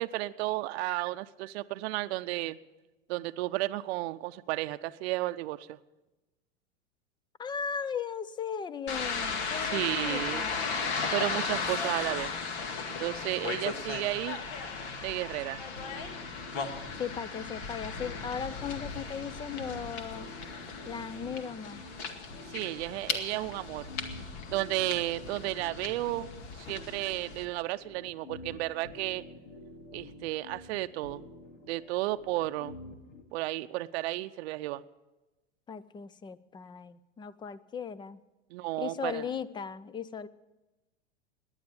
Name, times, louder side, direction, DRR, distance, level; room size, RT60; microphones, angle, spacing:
voice 1, 0.0-2.6 3.1-5.8 9.6-10.4 11.1-12.3 13.0-14.4 15.0-15.6 22.5-23.9 24.5-26.3 26.6-29.2 29.9-31.2 31.7-32.7 33.3-34.8 38.5-39.2, right 17 dB, 60° right, 10 dB, 0.7 m, -33 dB
voice 2, 7.4-10.6 17.0-20.3 20.9-21.8 35.7-38.2 38.8-40.3, left 7 dB, 15° left, 19 dB, 0.4 m, -37 dB
sound 1, 8.9-27.5, left 5 dB, 60° left, 2.2 m, -36 dB
sound 2, 15.8-33.2, left 2 dB, 80° left, 2.6 m, -49 dB
18.0 x 11.0 x 7.0 m, 1.1 s
hypercardioid pair, 110°, 37 cm